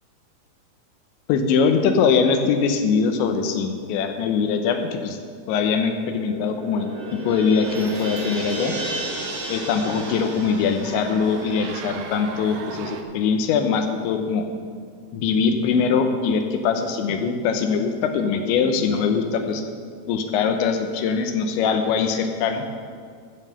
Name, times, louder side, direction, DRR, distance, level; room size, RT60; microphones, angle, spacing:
voice 1, 1.3-5.2 5.5-6.9 7.3-8.7 9.5-14.5 15.1-19.6 20.1-22.6, left 5 dB, 85° left, 6 dB, 3.2 m, -22 dB
sound 1, 5.9-12.5, right 1 dB, 60° right, 0.9 m, -33 dB
sound 2, 7.6-13.0, right 6 dB, 85° right, 2.0 m, -38 dB
14.5 x 5.7 x 6.9 m, 2.1 s
omnidirectional pair, 5.1 m